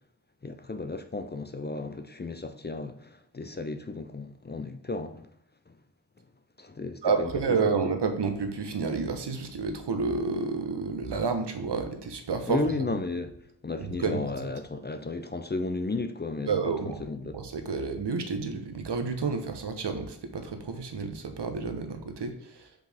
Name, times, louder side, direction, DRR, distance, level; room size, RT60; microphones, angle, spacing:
voice 1, 0.4-5.3 6.6-7.3 12.5-13.3 13.6-16.5 17.0-17.4, left 3 dB, 25° left, 0.5 m, -33 dB
voice 2, 7.0-12.8 13.8-14.5 16.5-17.0 17.3-22.7, right 4 dB, 75° right, 1.0 m, -30 dB
5.9 x 5.2 x 3.4 m
wide cardioid pair, 110°, 41 cm